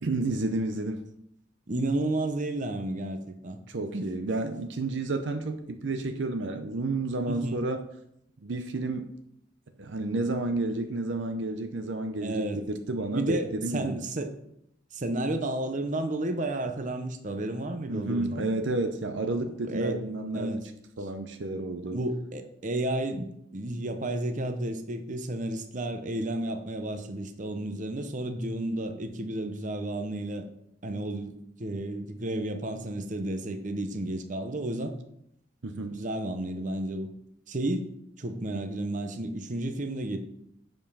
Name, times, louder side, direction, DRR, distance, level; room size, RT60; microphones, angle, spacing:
voice 1, 0.0-1.0 3.7-7.8 8.4-9.1 9.8-14.1 17.9-20.6 21.0-22.0 35.6-36.0, right 2 dB, 70° right, 7 dB, 0.7 m, -31 dB
voice 2, 1.7-3.6 3.9-4.0 7.3-7.6 12.2-12.6 13.1-14.3 14.9-18.4 19.6-20.0 20.3-20.7 21.9-30.4 30.8-34.9 35.9-37.1 37.5-40.2, right 1 dB, 40° right, 7 dB, 0.8 m, -32 dB
7.1 x 5.3 x 5.6 m, 0.75 s
head